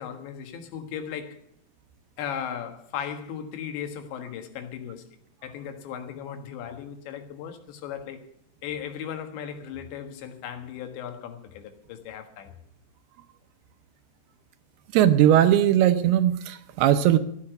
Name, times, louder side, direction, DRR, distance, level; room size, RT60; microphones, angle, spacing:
voice 1, 0.0-1.4 2.2-5.0 5.4-8.2 8.6-12.5, left 8 dB, 90° left, 3.9 m, -36 dB
voice 2, 14.9-17.2, right 11 dB, 75° right, 2.5 m, -19 dB
14.5 x 9.8 x 7.7 m
omnidirectional pair, 5.0 m